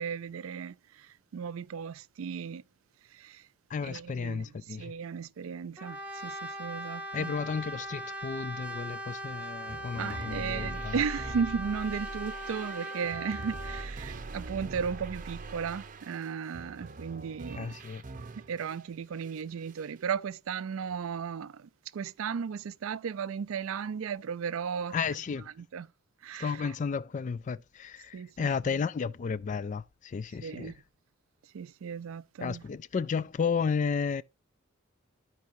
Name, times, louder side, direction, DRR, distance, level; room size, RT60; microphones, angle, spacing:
voice 1, 0.0-2.6 3.1-3.5 3.8-7.3 9.9-17.8 18.3-25.2 25.6-25.9 26.2-26.7 28.1-28.8 30.3-30.8 31.5-32.6, right 6 dB, 70° right, 0.4 m, -36 dB
voice 2, 3.7-4.9 7.1-10.9 17.6-18.0 24.9-25.5 26.4-30.7 32.4-34.2, left 5 dB, 35° left, 0.3 m, -33 dB
Brass instrument, 5.8-13.9, equal, 5° right, 0.7 m, -39 dB
sound 1, 9.7-18.8 19.2-20.0, right 3 dB, 40° right, 0.7 m, -43 dB
13.5 x 4.7 x 2.6 m
head